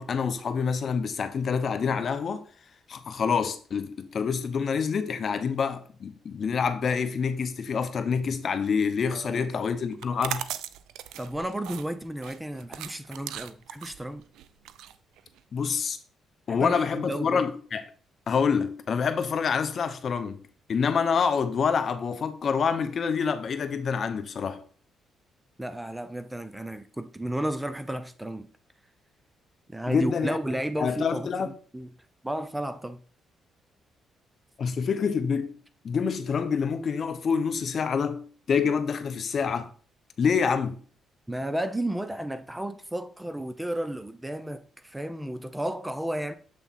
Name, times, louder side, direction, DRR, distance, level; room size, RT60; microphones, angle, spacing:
voice 1, 0.0-2.4 2.9-10.4 15.5-16.0 16.5-17.8 18.3-20.4 20.7-24.6 29.9-30.4 30.8-31.5 34.6-35.5 35.8-39.7 40.2-40.8, left 6 dB, 50° left, 0.7 m, -27 dB
voice 2, 9.1-9.7 11.2-14.2 16.5-17.5 25.6-28.5 29.7-31.9 32.2-33.0 41.3-46.3, right 1 dB, 10° right, 0.4 m, -33 dB
sound 1, 9.9-15.7, right 11 dB, 85° right, 0.3 m, -38 dB
7.1 x 3.4 x 4.2 m
cardioid pair, 90°, 0 cm